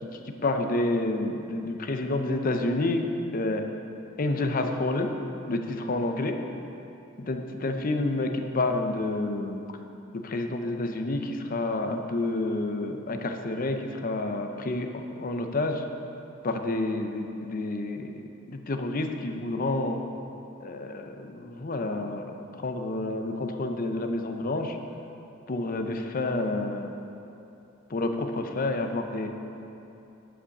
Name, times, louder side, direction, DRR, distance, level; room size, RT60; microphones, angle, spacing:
voice 1, 0.0-3.7 4.2-5.1 5.5-6.4 7.2-9.6 10.1-15.8 16.4-20.0 20.6-24.8 25.5-27.0 27.9-29.3, left 2 dB, 45° left, 5 dB, 0.6 m, -29 dB
9.9 x 5.1 x 6.5 m, 2.9 s
head